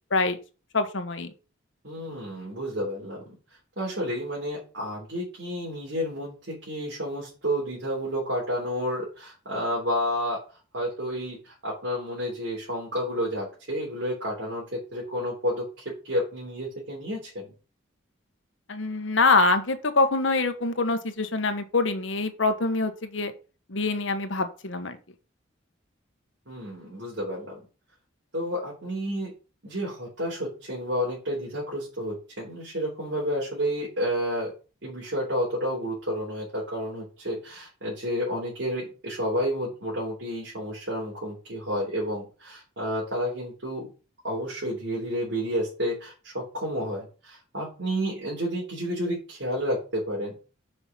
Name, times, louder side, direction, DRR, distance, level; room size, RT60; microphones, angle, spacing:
voice 1, 0.7-1.3 18.7-23.3 23.7-25.0, left 3 dB, 75° left, 8 dB, 1.3 m, -25 dB
voice 2, 1.8-3.2 3.8-10.4 10.7-15.7 16.0-17.5 26.5-27.6 28.3-29.3 29.6-34.5 34.8-43.9 44.2-50.4, equal, 70° right, -5 dB, 3.6 m, -30 dB
6.8 x 5.5 x 6.0 m, 0.35 s
head